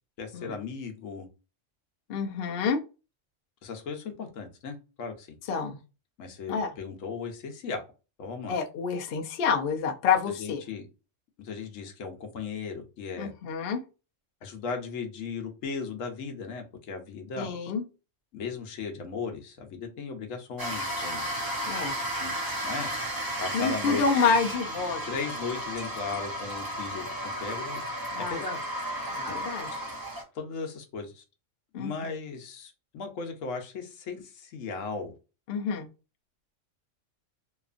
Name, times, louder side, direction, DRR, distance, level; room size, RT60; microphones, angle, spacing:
voice 1, 0.2-1.3 3.6-5.4 6.2-7.8 8.2-8.6 10.2-10.9 11.4-13.3 14.4-17.5 18.3-21.2 22.2-22.3 22.6-22.9 23.4-24.0 25.0-27.8 28.2-28.6 29.3-29.4 30.3-31.2 31.7-35.1, left 5 dB, 85° left, 1.1 m, -37 dB
voice 2, 2.1-2.8 5.5-5.8 6.5-6.7 8.5-10.6 13.2-13.8 17.4-17.9 21.7-21.9 23.5-25.0 28.1-28.4 29.1-29.8 31.7-31.9 35.5-35.9, left 5 dB, 60° left, 0.7 m, -28 dB
sound 1, 20.6-30.2, equal, 25° right, 0.5 m, -33 dB
2.9 x 2.4 x 2.4 m
omnidirectional pair, 1.3 m